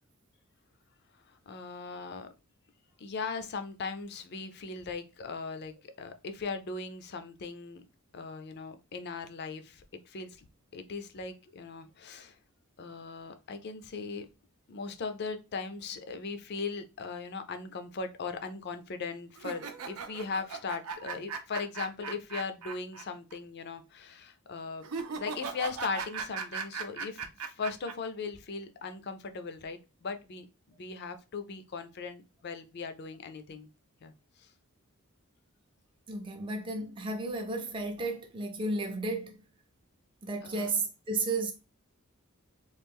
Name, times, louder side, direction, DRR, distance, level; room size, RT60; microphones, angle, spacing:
voice 1, 1.5-2.3 3.0-7.8 8.1-10.4 10.7-12.3 12.8-14.3 14.7-24.9 25.1-33.7 34.0-34.1 40.4-40.7, left 4 dB, 50° left, 0.5 m, -39 dB
sound 1, 19.4-23.0 23.3-23.4 24.8-27.9, right 5 dB, 85° right, 0.5 m, -38 dB
voice 2, 36.1-39.4 40.2-41.5, right 3 dB, 25° right, 0.4 m, -33 dB
3.1 x 2.4 x 3.5 m
head